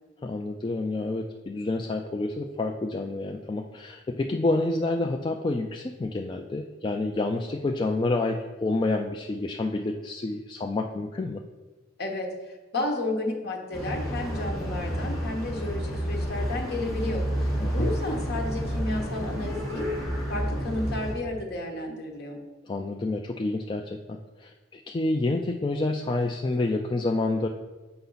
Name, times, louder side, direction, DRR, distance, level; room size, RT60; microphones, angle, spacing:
voice 1, 0.2-11.4 17.6-17.9 22.6-27.5, left 2 dB, 25° left, 2 dB, 0.3 m, -28 dB
voice 2, 12.0-17.2 17.7-19.9 20.3-22.4, left 2 dB, 55° left, 1 dB, 1.1 m, -32 dB
sound 1, 13.7-21.1, equal, ahead, 1.8 m, -30 dB
6.8 x 5.3 x 3.9 m, 1.2 s
head